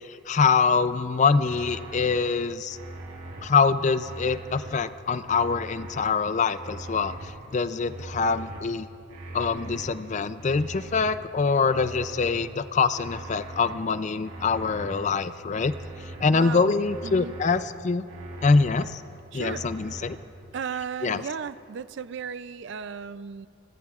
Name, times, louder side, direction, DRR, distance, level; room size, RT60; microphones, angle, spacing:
voice 1, 0.3-2.8 3.4-8.9 9.3-15.7 16.2-18.1 18.4-19.0 19.3-20.2 21.0-21.2, left 4 dB, 35° left, 13 dB, 0.4 m, -24 dB
sound 1, 1.4-2.2 2.7-3.5 4.0-4.7 5.2-6.0 6.5-7.3 7.8-8.6 9.1-9.9 10.4-11.2 11.7-12.4 12.9-13.7 14.2-15.0 15.5-16.3 16.8-17.6 18.1-18.8 19.3-20.1, right 2 dB, 70° right, 3.5 m, -41 dB
voice 2, 16.3-16.8 17.0-17.4 19.3-19.7 20.5-23.5, right 6 dB, 55° right, 16 dB, 0.3 m, -35 dB
29.0 x 20.5 x 2.4 m, 2.6 s
head